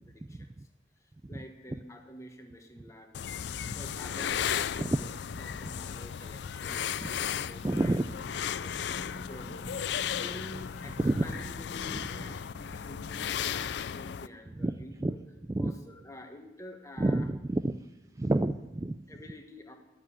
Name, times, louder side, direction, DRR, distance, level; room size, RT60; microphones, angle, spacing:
voice 1, 1.0-5.1 5.4-8.0 8.3-8.8 9.3-15.2 15.6-17.3 19.1-19.7, left 1 dB, 15° left, 4 dB, 1.3 m, -48 dB
sound 1, 3.1-14.3, left 8 dB, 65° left, 0.4 m, -35 dB
sound 2, 7.3-12.5, equal, 40° left, 1.0 m, -49 dB
voice 2, 7.6-8.1 11.0-11.3 14.6-15.1 15.5-15.7 17.0-17.7 18.2-19.0, right 2 dB, 15° right, 9 dB, 0.3 m, -29 dB
12.0 x 7.3 x 8.6 m, 1.0 s
head